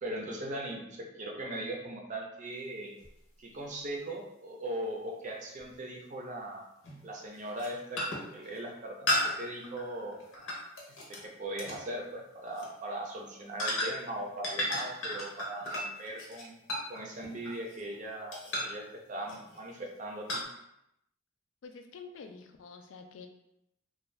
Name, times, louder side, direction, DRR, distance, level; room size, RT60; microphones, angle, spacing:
voice 1, 0.0-2.9 3.4-6.6 7.0-8.0 8.3-10.2 11.1-16.5 16.9-20.4, right 1 dB, 40° right, 1 dB, 0.5 m, -39 dB
sound 1, 3.0-3.1 5.6-5.7 6.8-7.1 7.5-7.7 8.0-8.4 9.1-11.2 11.6-11.8 12.5-12.7 13.6-14.1 14.4-18.0 18.3-18.8 19.3-19.6 20.3-20.4, left 1 dB, 90° left, 0.8 m, -34 dB
voice 2, 21.6-23.3, left 4 dB, 70° left, 5 dB, 0.3 m, -48 dB
2.5 x 2.2 x 3.1 m, 0.82 s
head